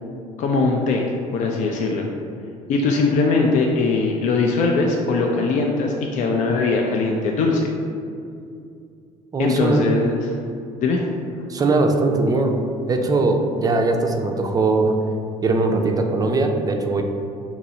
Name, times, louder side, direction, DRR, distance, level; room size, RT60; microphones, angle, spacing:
voice 1, 0.4-1.1 1.3-2.1 2.7-7.7 9.4-10.3 10.8-11.0, left 3 dB, 50° left, 0 dB, 0.4 m, -20 dB
voice 2, 9.3-10.0 11.5-12.6 12.9-15.0 15.4-17.0, right 3 dB, 25° right, 4 dB, 0.4 m, -20 dB
2.9 x 2.6 x 4.2 m, 2.4 s
supercardioid pair, 75°, 16 cm